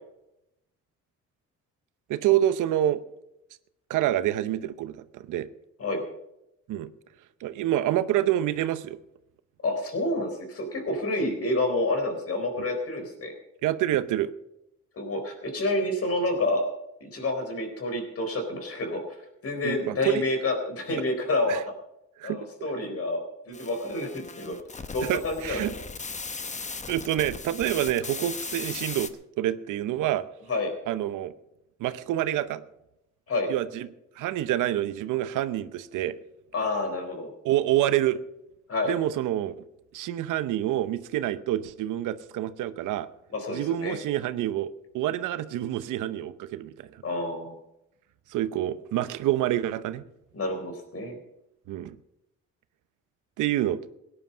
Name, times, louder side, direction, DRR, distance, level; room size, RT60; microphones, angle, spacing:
voice 1, 2.1-3.0 3.9-5.5 6.7-6.9 7.4-9.0 13.6-14.3 19.6-20.2 21.5-21.6 22.2-22.4 25.0-25.7 26.9-29.1 29.4-30.2 30.9-31.3 31.8-32.6 33.5-33.9 34.2-36.2 37.4-38.2 38.9-39.6 39.9-43.1 43.5-47.0 48.3-50.0 51.7-52.0 53.4-53.8, right 13 dB, 85° right, 14 dB, 0.8 m, -27 dB
voice 2, 9.6-13.3 15.0-16.6 17.0-19.0 19.4-21.6 22.2-23.2 23.5-24.6 24.9-25.6 30.5-30.7 33.3-33.5 36.5-37.3 38.7-38.9 43.3-44.0 47.0-47.6 50.3-51.2, left 2 dB, 50° left, 5 dB, 4.0 m, -28 dB
sound 1, 23.5-29.1, left 4 dB, 25° left, 1.0 m, -38 dB
17.0 x 10.0 x 5.6 m, 0.85 s
cardioid pair, 90°, 30 cm